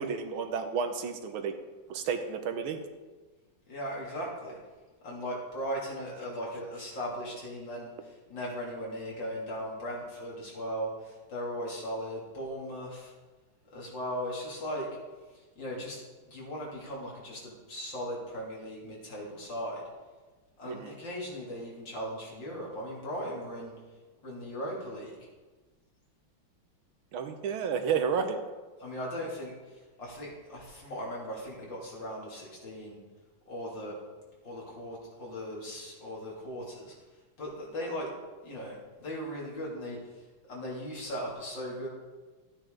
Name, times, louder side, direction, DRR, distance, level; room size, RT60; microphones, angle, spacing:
voice 1, 0.0-1.6 1.9-2.8 20.7-20.9 27.1-28.4, right 6 dB, 80° right, 7 dB, 1.8 m, -31 dB
voice 2, 3.7-4.6 5.0-13.1 13.7-14.9 15.6-16.0 16.2-19.8 20.6-23.7 24.2-25.1 28.8-33.0 33.5-33.9 34.4-36.9 37.4-38.1 38.4-40.0 40.5-41.9, equal, 60° left, -4 dB, 3.6 m, -38 dB
13.5 x 9.2 x 3.9 m, 1.3 s
omnidirectional pair, 2.3 m